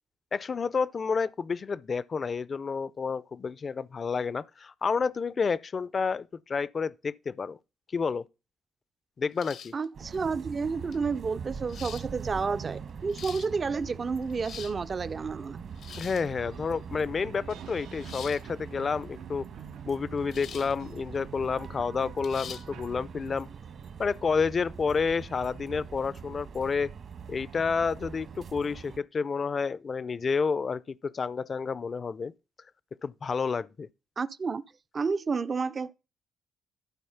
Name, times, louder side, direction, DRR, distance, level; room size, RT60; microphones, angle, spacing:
voice 1, 0.3-7.6 7.9-8.2 9.2-9.7 16.0-19.5 19.9-23.5 24.0-26.9 27.3-32.3 33.0-33.9, left 5 dB, 40° left, 0.4 m, -30 dB
sound 1, 9.4-9.9 10.9-11.0 11.7-12.1 12.9-13.5 14.2-14.8 15.8-16.3 18.0-18.4 20.3-20.7 21.1-21.2 22.2-22.7, left 8 dB, 70° left, 0.8 m, -44 dB
voice 2, 9.7-15.7 34.2-34.6 34.9-35.9, right 5 dB, 40° right, 0.5 m, -30 dB
sound 2, 9.9-29.0, right 6 dB, 60° right, 1.3 m, -43 dB
sound 3, 15.1-15.2 15.5-23.6, right 9 dB, 90° right, 0.8 m, -51 dB
11.5 x 4.3 x 5.6 m
cardioid pair, 90°, 0 cm